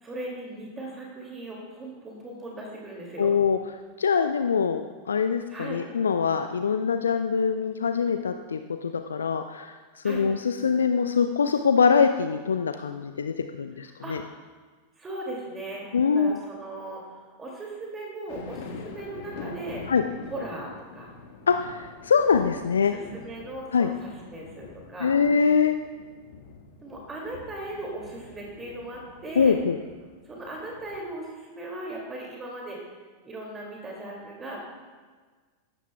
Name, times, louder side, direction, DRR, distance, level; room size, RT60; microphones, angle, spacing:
voice 1, 0.0-3.3 5.5-5.8 10.0-10.2 14.0-14.2 15.0-15.9 16.1-19.8 20.3-21.1 22.9-25.1 26.8-29.6 30.3-32.8 33.2-34.6, right 2 dB, 15° right, -2 dB, 2.5 m, -38 dB
voice 2, 3.2-3.6 4.0-9.8 10.0-14.2 15.9-16.4 19.9-20.0 21.5-22.9 23.7-23.9 25.0-25.8 29.4-29.8, left 6 dB, 70° left, 8 dB, 0.5 m, -23 dB
sound 1, 18.3-31.0, left 4 dB, 50° left, 1.5 m, -45 dB
15.0 x 13.0 x 2.3 m, 1.4 s
figure-of-eight pair, 90°, 0 cm